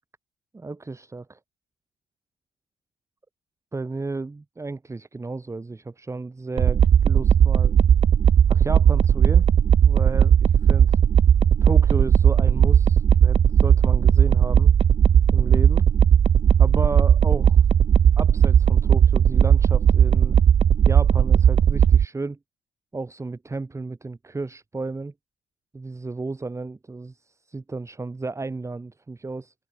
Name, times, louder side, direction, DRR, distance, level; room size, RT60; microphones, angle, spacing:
voice 1, 0.5-1.4 3.7-7.7 8.5-9.4 9.8-11.0 11.6-14.7 15.3-15.8 16.6-17.7 18.2-20.4 20.8-22.4 22.9-25.1 25.7-29.5, right 3 dB, 15° right, 3.0 m, -33 dB
sound 1, 6.6-22.0, right 8 dB, 35° right, 0.5 m, -17 dB
cardioid pair, 110°, 17 cm